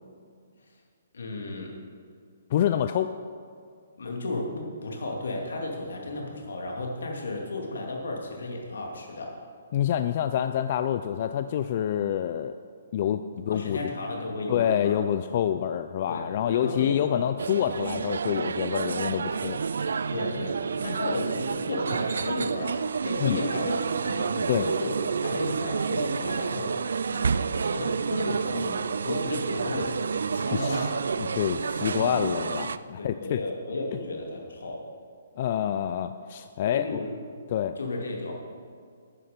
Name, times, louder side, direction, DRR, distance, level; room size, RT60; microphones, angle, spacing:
voice 1, 1.1-1.7 2.9-3.0 4.0-9.4 13.5-15.0 15.3-15.4 16.1-16.2 16.5-17.3 20.1-31.3 31.7-32.5 33.0-34.9 36.7-37.4 37.8-38.4, left 2 dB, 85° left, 0 dB, 2.6 m, -34 dB
voice 2, 2.5-3.1 9.7-12.6 12.9-13.9 14.5-19.6 23.2-23.4 24.5-24.7 30.5-30.9 31.2-33.4 35.4-37.0 37.5-37.8, left 10 dB, 40° left, 10 dB, 0.4 m, -27 dB
sound 1, 17.4-32.8, right 5 dB, 80° right, 0.4 m, -29 dB
11.5 x 9.5 x 5.2 m, 2.2 s
hypercardioid pair, 160°, 0 cm